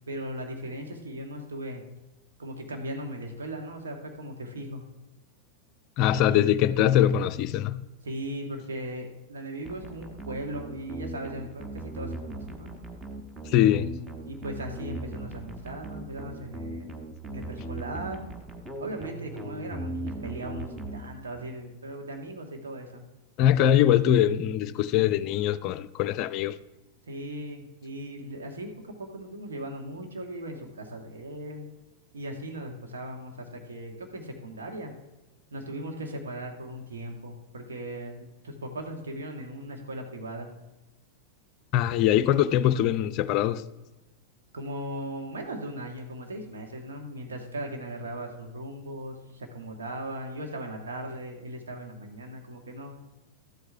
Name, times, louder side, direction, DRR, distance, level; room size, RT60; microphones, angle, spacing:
voice 1, 0.1-1.8 2.4-4.8 6.1-6.5 8.0-12.7 14.2-16.9 17.3-18.2 18.8-23.0 27.1-31.7 32.1-34.9 35.5-40.5 44.5-53.0, right 1 dB, 70° right, 1.5 m, -38 dB
voice 2, 6.0-7.9 13.5-14.0 23.4-26.6 41.7-43.6, left 11 dB, 45° left, 0.4 m, -22 dB
sound 1, 9.6-21.5, right 1 dB, 15° right, 1.1 m, -39 dB
12.5 x 8.0 x 3.4 m
figure-of-eight pair, 90°, 0 cm